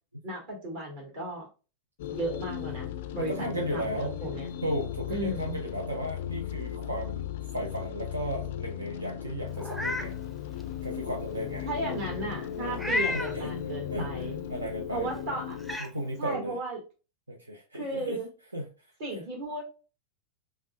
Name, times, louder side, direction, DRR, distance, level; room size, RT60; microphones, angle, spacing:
voice 1, 0.2-1.5 2.1-4.5 5.1-5.6 11.6-14.4 14.9-15.6 16.2-16.8 17.7-18.3 19.0-19.6, right 1 dB, 50° right, -1 dB, 1.5 m, -35 dB
sound 1, 2.0-15.8, left 10 dB, 55° left, 0.3 m, -37 dB
voice 2, 3.2-4.1 4.6-10.1 10.8-11.7 12.6-12.8 13.1-13.5 13.9-14.2 14.5-15.2 15.8-16.6 17.3-18.2 18.5-18.7, equal, 80° right, 2 dB, 0.6 m, -35 dB
Meow, 9.6-10.1 10.6-10.7 12.7-13.4 14.9-15.0 15.6-15.9, left 2 dB, ahead, 0.5 m, -31 dB
5.7 x 2.3 x 2.2 m, 0.32 s
figure-of-eight pair, 90°, 0 cm